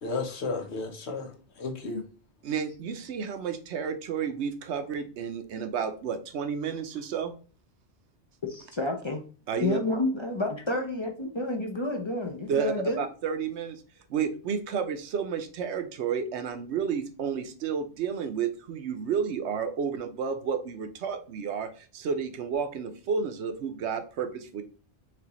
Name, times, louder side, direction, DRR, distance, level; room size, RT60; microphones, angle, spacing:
voice 1, 0.0-2.0, left 3 dB, 70° left, 1.1 m, -33 dB
voice 2, 2.4-7.3 9.5-9.8 12.5-13.8 14.1-24.6, right 6 dB, 75° right, 0.9 m, -31 dB
voice 3, 8.4-9.2 9.6-13.0, left 2 dB, 35° left, 0.5 m, -30 dB
6.1 x 2.5 x 3.0 m
omnidirectional pair, 1.2 m